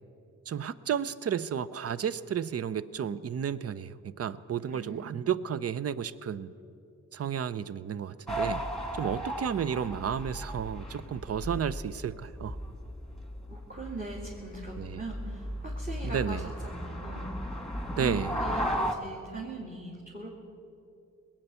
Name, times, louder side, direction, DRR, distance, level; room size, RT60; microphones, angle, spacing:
voice 1, 0.5-6.5 7.1-8.6 8.9-12.6 14.8-15.0 16.0-16.5 17.9-18.4, right 8 dB, 50° right, 17 dB, 0.6 m, -32 dB
voice 2, 4.7-5.2 13.3-17.5 17.9-20.5, right 2 dB, 25° right, -3 dB, 2.5 m, -41 dB
sound 1, 8.3-18.9, equal, ahead, 1.8 m, -36 dB
20.0 x 8.9 x 6.9 m, 2.6 s
cardioid pair, 60°, 32 cm